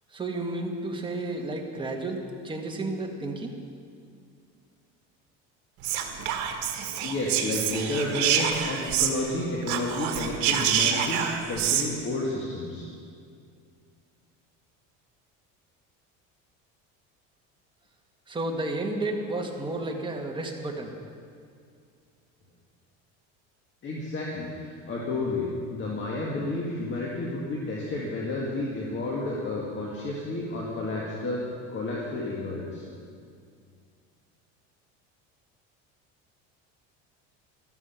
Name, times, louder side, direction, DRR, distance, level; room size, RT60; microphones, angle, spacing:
voice 1, 0.1-3.5 18.3-21.0, right 2 dB, 15° right, 1 dB, 1.7 m, -32 dB
Whispering, 5.8-9.4 9.6-11.9, right 9 dB, 75° right, 1.5 m, -27 dB
voice 2, 7.0-12.9 23.8-31.4 31.7-32.8, left 2 dB, 40° left, -4 dB, 2.1 m, -31 dB
13.0 x 12.5 x 5.8 m, 2.3 s
cardioid pair, 125°, 31 cm